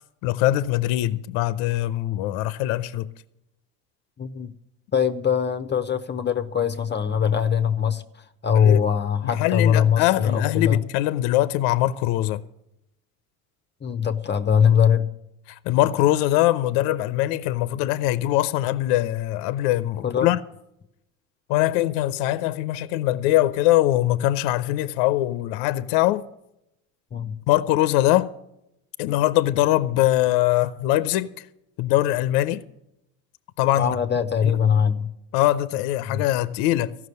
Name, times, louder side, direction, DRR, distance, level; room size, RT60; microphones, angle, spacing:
voice 1, 0.2-3.1 8.6-8.8 9.2-12.4 15.5-20.4 21.5-26.3 27.5-28.3 29.0-31.5 31.8-32.6 33.6-33.9 34.4-34.5 35.3-37.0, left 15 dB, 70° left, 0.7 m, -22 dB
voice 2, 4.2-4.5 4.9-8.0 8.4-10.8 13.8-15.1 20.0-20.3 27.1-27.4 33.7-35.1 36.1-36.2, left 8 dB, 25° left, 0.8 m, -21 dB
14.5 x 6.1 x 9.5 m
supercardioid pair, 90°, 42 cm